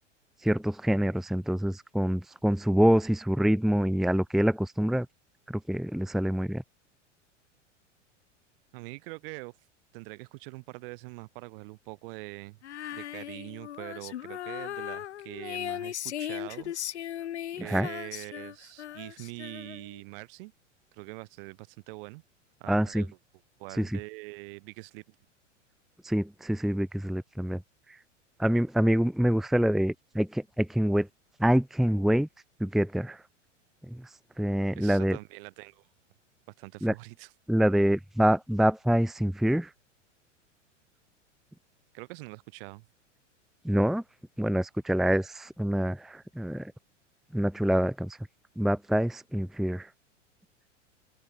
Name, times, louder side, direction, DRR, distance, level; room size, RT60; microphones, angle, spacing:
voice 1, 0.4-5.1 5.5-6.6 17.6-17.9 22.7-23.0 23.7-24.0 26.0-27.6 28.4-31.1 31.4-32.3 32.6-33.2 33.9-34.0 34.4-35.2 36.8-36.9 37.5-39.7 43.6-44.0 44.4-46.7 47.3-48.2 48.6-49.9, equal, ahead, 1.1 m, -26 dB
voice 2, 8.7-9.5 9.9-12.6 12.9-17.2 17.6-20.5 20.9-22.2 22.6-23.1 23.6-25.1 34.8-35.9 36.6-37.3 41.9-42.9, right 26 dB, 45° right, 6.4 m, -43 dB
Female singing, 12.6-20.0, left 11 dB, 60° left, 1.5 m, -38 dB
figure-of-eight pair, 90°, 37 cm